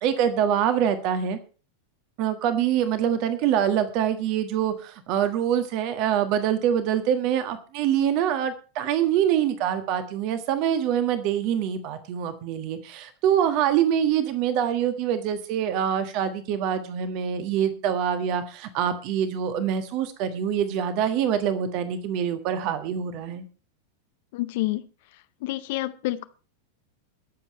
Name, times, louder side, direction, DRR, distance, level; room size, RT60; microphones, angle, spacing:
voice 1, 0.0-1.4 2.2-23.4, right 9 dB, 40° right, 1.5 m, -25 dB
voice 2, 24.3-24.9 25.4-26.3, left 17 dB, 50° left, 0.8 m, -28 dB
21.5 x 7.5 x 4.3 m
figure-of-eight pair, 90°, 0 cm